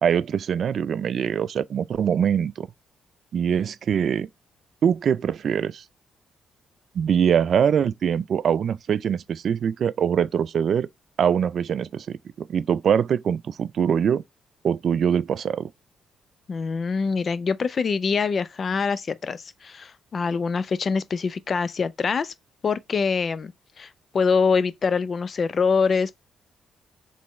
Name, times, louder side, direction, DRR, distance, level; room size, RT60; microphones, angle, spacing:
voice 1, 0.0-2.7 3.3-4.3 4.8-5.8 6.9-10.9 11.2-14.2 14.6-15.7, right 8 dB, 55° right, 0.3 m, -23 dB
voice 2, 16.5-22.3 22.6-23.5 23.8-26.3, left 5 dB, 45° left, 0.4 m, -24 dB
4.3 x 3.3 x 3.0 m
cardioid pair, 90°, 0 cm